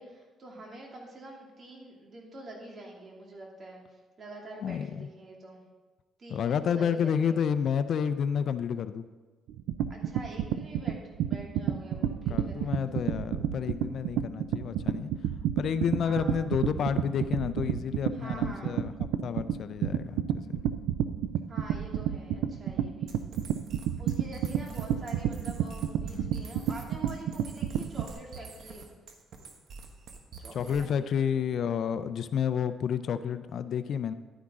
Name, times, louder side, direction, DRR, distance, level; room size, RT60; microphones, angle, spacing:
voice 1, 0.0-5.6 6.2-7.4 9.9-12.8 16.0-16.5 18.1-18.8 21.5-23.2 24.0-28.8 30.4-31.3 31.5-31.6, right 1 dB, 45° right, -1 dB, 2.6 m, -46 dB
voice 2, 4.6-5.1 6.3-9.0 12.0-15.1 15.6-18.9 19.2-20.6 26.0-26.4 30.5-34.1, left 7 dB, 65° left, 12 dB, 0.5 m, -30 dB
sound 1, 9.5-28.1, right 10 dB, 85° right, 0.4 m, -30 dB
sound 2, 23.1-31.1, right 4 dB, 65° right, 1.3 m, -47 dB
11.0 x 10.0 x 3.7 m, 1.3 s
cardioid pair, 90°, 0 cm